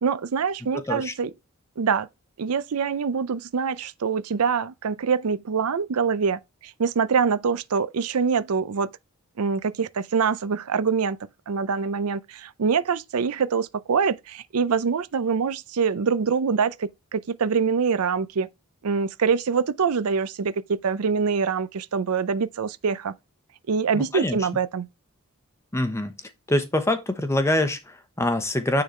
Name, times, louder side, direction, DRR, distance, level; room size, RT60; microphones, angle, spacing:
voice 1, 0.0-1.3 1.8-2.1 2.4-8.9 9.4-11.2 11.5-18.5 18.8-23.1 23.7-24.9, right 5 dB, 85° right, 0.5 m, -24 dB
voice 2, 0.7-1.1 23.9-24.4 25.7-26.1 26.5-28.8, left 1 dB, 15° left, 0.9 m, -25 dB
9.4 x 3.9 x 3.2 m
head